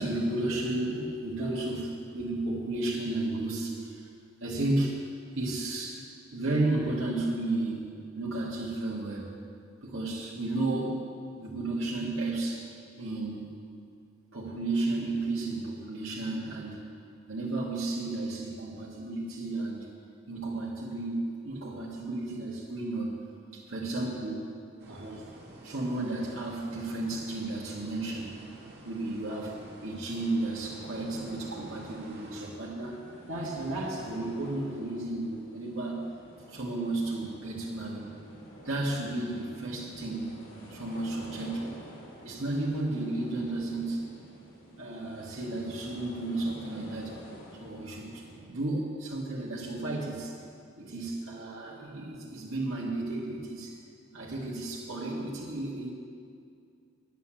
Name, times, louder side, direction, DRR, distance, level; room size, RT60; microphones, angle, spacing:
voice 1, 0.0-4.1 4.4-5.0 5.4-6.0 6.3-7.9 8.2-9.4 9.8-11.0 11.4-12.7 13.0-13.5 14.3-16.8 17.3-19.9 20.3-23.2 23.5-24.5 24.9-25.2 25.6-28.3 28.8-33.0 33.3-36.0 36.5-38.1 38.6-40.4 40.7-41.7 42.2-44.0 44.8-47.2 47.6-50.4 50.8-53.8 54.1-55.9, right 2 dB, 75° right, -5 dB, 1.9 m, -33 dB
sound 1, 24.8-32.5, right 1 dB, 55° right, 2.0 m, -50 dB
sound 2, 30.0-48.5, equal, 65° left, 3.3 m, -49 dB
9.6 x 8.0 x 8.9 m, 2.4 s
head